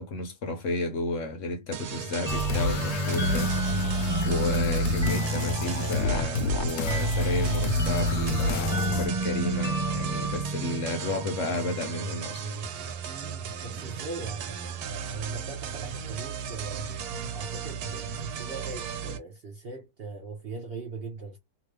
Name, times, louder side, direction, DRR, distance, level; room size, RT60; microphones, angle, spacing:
voice 1, 0.0-12.4, left 2 dB, 60° left, 1.0 m, -32 dB
sound 1, 1.7-19.2, right 7 dB, 80° right, 1.2 m, -36 dB
sound 2, 2.3-9.1, left 2 dB, 90° left, 1.2 m, -28 dB
sound 3, 2.3-11.6, right 2 dB, 5° right, 0.4 m, -31 dB
voice 2, 13.1-16.9 17.3-21.4, right 4 dB, 55° right, 0.7 m, -40 dB
2.9 x 2.4 x 3.1 m
omnidirectional pair, 1.6 m